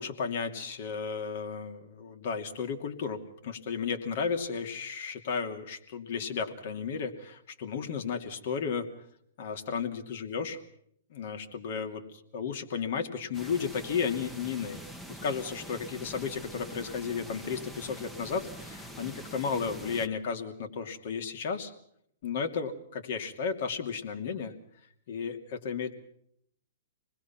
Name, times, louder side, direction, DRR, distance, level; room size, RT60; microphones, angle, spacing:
voice 1, 0.0-8.9 9.4-10.6 11.1-12.0 12.3-21.7 22.2-24.5 25.1-26.0, left 6 dB, 60° left, 5 dB, 2.8 m, -34 dB
sound 1, 13.3-20.1, equal, 5° left, 1.2 m, -45 dB
26.5 x 20.5 x 5.9 m, 0.69 s
hypercardioid pair, 130°, 0 cm